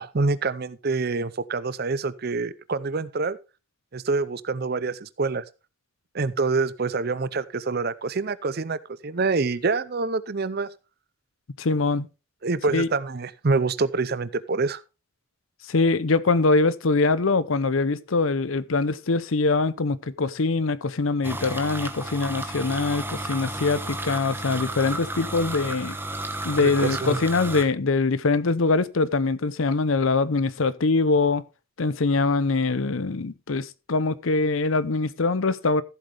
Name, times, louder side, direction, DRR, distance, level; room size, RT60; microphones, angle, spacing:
voice 1, 0.0-3.4 3.9-5.4 6.1-10.7 12.4-14.8 26.6-27.2, right 3 dB, 45° right, 0.6 m, -26 dB
voice 2, 11.6-12.1 12.7-12.9 15.7-26.0 26.4-31.4 31.8-35.8, left 3 dB, 70° left, 0.7 m, -23 dB
sound 1, 21.2-27.6, right 1 dB, 10° right, 1.1 m, -33 dB
14.5 x 7.9 x 3.4 m
head